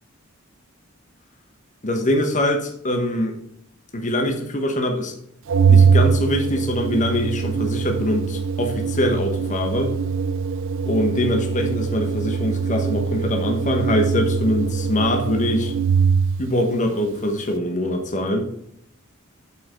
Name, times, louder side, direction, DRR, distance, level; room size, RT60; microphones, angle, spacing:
voice 1, 1.8-3.4 3.9-5.1 5.7-9.9 10.8-15.7 16.4-18.4, left 1 dB, 35° left, 3 dB, 1.1 m, -23 dB
Organ, 5.5-16.5, right 6 dB, 65° right, 0.4 m, -22 dB
8.2 x 5.3 x 3.8 m, 0.72 s
head